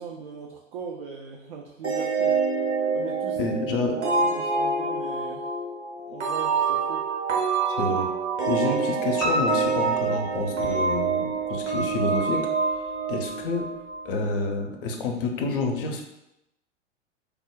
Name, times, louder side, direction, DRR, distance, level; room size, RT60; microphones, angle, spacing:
voice 1, 0.0-2.4 2.9-3.4 3.9-5.5 6.1-7.1, right 6 dB, 50° right, 1 dB, 0.4 m, -39 dB
sound 1, 1.8-14.3, right 5 dB, 65° right, 1.0 m, -26 dB
voice 2, 3.4-4.0 4.2-4.4 7.7-8.1 8.5-12.8 13.1-13.7 14.0-16.0, left 3 dB, 45° left, 3 dB, 0.6 m, -28 dB
Piano, 9.2-11.1 11.5-12.4 12.7-12.8 13.3-13.4 13.6-13.7, left 2 dB, ahead, 0.6 m, -30 dB
3.4 x 2.1 x 3.5 m, 0.87 s
figure-of-eight pair, 100°, 37 cm